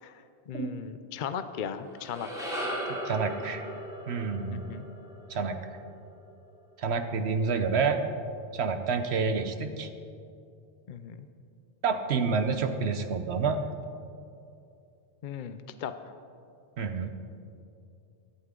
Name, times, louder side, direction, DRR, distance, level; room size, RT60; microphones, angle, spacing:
voice 1, 0.0-2.5 4.5-4.9 10.9-11.2 15.2-15.9, left 8 dB, 55° left, 10 dB, 0.6 m, -37 dB
sound 1, 1.8-6.3, equal, 5° right, 2.8 m, -38 dB
voice 2, 2.9-3.6 4.1-4.7 5.3-5.6 6.8-8.0 8.5-9.9 11.8-13.6 16.8-17.1, right 5 dB, 70° right, 8 dB, 1.0 m, -28 dB
17.0 x 11.5 x 3.8 m, 2.5 s
omnidirectional pair, 1.2 m